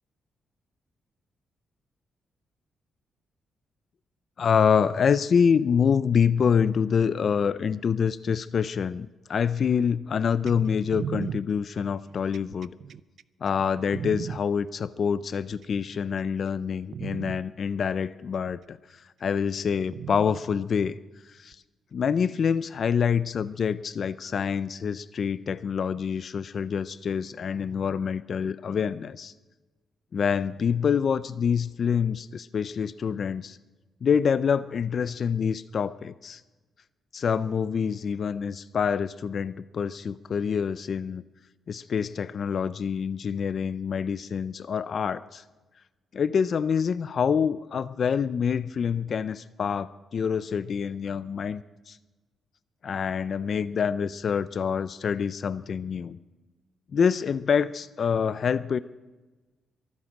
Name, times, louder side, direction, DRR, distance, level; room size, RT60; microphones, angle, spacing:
voice 1, 4.4-12.7 13.4-18.8 19.2-21.0 21.4-21.6 21.9-29.3 30.1-33.6 34.0-36.4 37.1-41.2 41.7-45.4 46.1-52.0 52.8-56.2 56.9-58.8, left 6 dB, 50° left, 16 dB, 0.5 m, -26 dB
sound 1, 10.5-14.4 15.3-16.0 16.5-16.6 16.9-17.4 18.5-18.6 19.9-20.4 21.5-21.6, right 8 dB, 60° right, 0.4 m, -36 dB
24.0 x 9.7 x 6.0 m, 1.2 s
cardioid pair, 130°, 0 cm